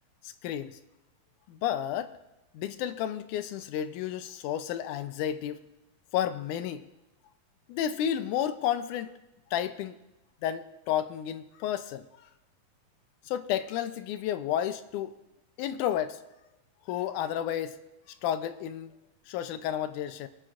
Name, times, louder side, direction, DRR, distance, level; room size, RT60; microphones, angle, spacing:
voice 1, 0.2-0.8 1.5-2.1 2.5-5.6 6.1-6.8 7.7-9.1 9.5-9.9 10.4-12.1 13.3-15.1 15.6-16.2 16.9-17.8 18.2-18.9 19.3-20.3, left 10 dB, 80° left, 10 dB, 2.0 m, -31 dB
22.0 x 9.1 x 2.5 m, 0.96 s
omnidirectional pair, 3.8 m